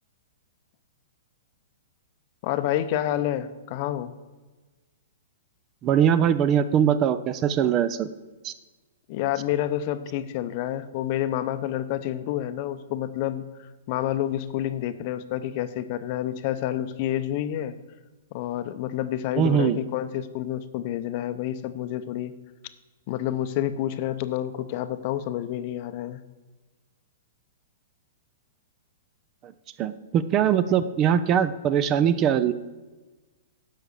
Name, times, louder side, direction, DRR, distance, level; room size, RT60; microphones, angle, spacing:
voice 1, 2.4-4.1 9.1-17.8 18.3-22.3 23.1-26.2, left 12 dB, 45° left, 12 dB, 0.7 m, -29 dB
voice 2, 5.8-8.1 8.4-8.5 19.4-19.8 29.4-29.5 29.8-32.5, right 9 dB, 30° right, 14 dB, 0.5 m, -22 dB
10.5 x 6.0 x 6.7 m, 1.2 s
hypercardioid pair, 145°, 0 cm